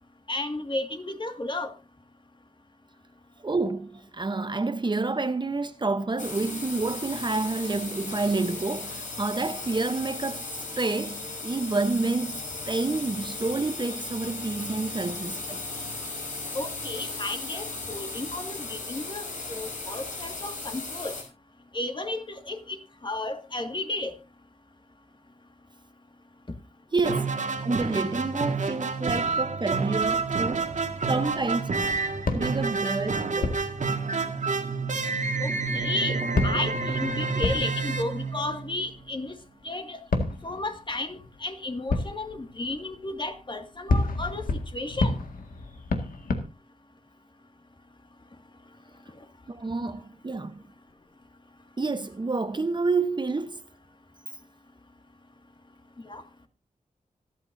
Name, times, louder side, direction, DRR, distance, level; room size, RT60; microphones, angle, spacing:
voice 1, 0.3-1.7 16.5-21.2 21.7-22.8 23.0-24.1 35.4-36.2 36.4-39.3 39.6-40.0 40.4-45.2 56.0-56.2, left 2 dB, 35° left, 2.0 m, -33 dB
voice 2, 3.4-10.5 10.8-15.6 26.9-27.3 27.6-30.7 31.1-31.7 32.3-33.5 49.5-50.6 51.8-53.6, right 3 dB, 35° right, 0.9 m, -29 dB
sound 1, 6.2-21.2, left 3 dB, 65° left, 5.8 m, -36 dB
sound 2, 27.0-38.9, right 4 dB, 60° right, 1.8 m, -29 dB
sound 3, 29.9-35.5 36.0-36.1 36.3-39.5 40.1-46.4, left 3 dB, 85° left, 1.9 m, -32 dB
26.0 x 8.8 x 2.7 m
wide cardioid pair, 80°, 14 cm